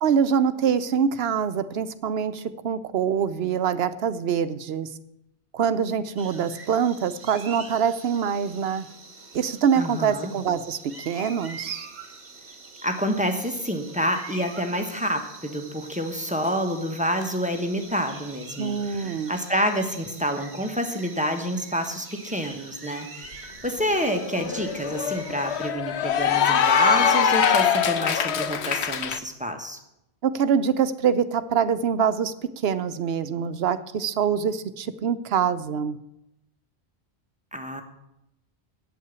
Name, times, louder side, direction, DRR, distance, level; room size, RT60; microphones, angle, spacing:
voice 1, 0.0-4.9 5.5-8.9 9.3-10.8 11.1-11.9 18.6-19.4 30.2-32.3 32.6-36.0, right 7 dB, 70° right, 12 dB, 0.9 m, -24 dB
sound 1, 6.2-25.7, right 3 dB, 45° right, 1.4 m, -44 dB
voice 2, 9.7-10.3 12.8-29.8 37.5-37.8, equal, 5° right, 4 dB, 1.2 m, -28 dB
Cheering / Applause, 23.3-23.4 23.8-29.2, left 7 dB, 85° left, 1.0 m, -23 dB
8.5 x 8.2 x 8.2 m, 0.83 s
omnidirectional pair, 1.1 m